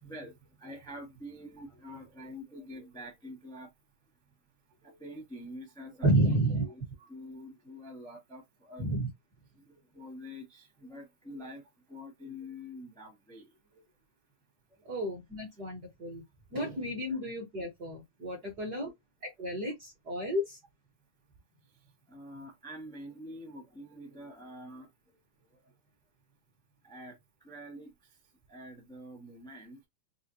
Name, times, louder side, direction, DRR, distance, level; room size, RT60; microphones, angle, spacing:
voice 1, 0.0-3.7 4.7-6.8 7.1-8.9 9.5-14.0 14.7-15.0 17.1-17.2 18.4-18.5 21.6-25.8 26.8-29.9, left 1 dB, 5° left, 0.8 m, -47 dB
voice 2, 6.0-6.6 8.8-9.1 14.8-16.2 16.5-18.9 19.2-20.6, right 1 dB, 45° right, 1.3 m, -31 dB
5.6 x 2.4 x 2.8 m
omnidirectional pair, 3.6 m